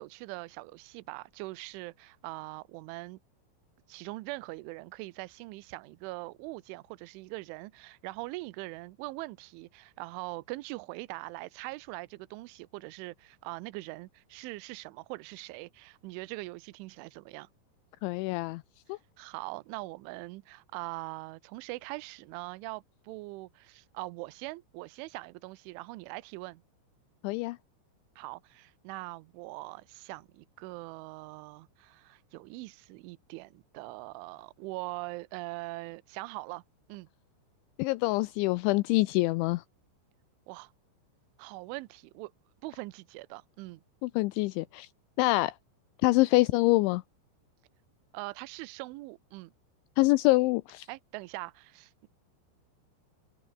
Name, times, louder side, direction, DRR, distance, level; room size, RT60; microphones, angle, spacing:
voice 1, 0.0-3.2 3.9-17.5 19.2-26.6 28.2-36.6 36.9-37.1 40.5-40.7 41.4-42.3 42.6-43.8 48.1-49.5 50.9-52.1, right 22 dB, 85° right, 3.2 m, -42 dB
voice 2, 18.0-18.6 18.9-19.0 27.2-27.6 37.8-39.6 44.0-44.9 45.2-45.5 46.0-47.0 50.0-50.9, left 21 dB, 80° left, 2.8 m, -25 dB
open air
omnidirectional pair, 5.6 m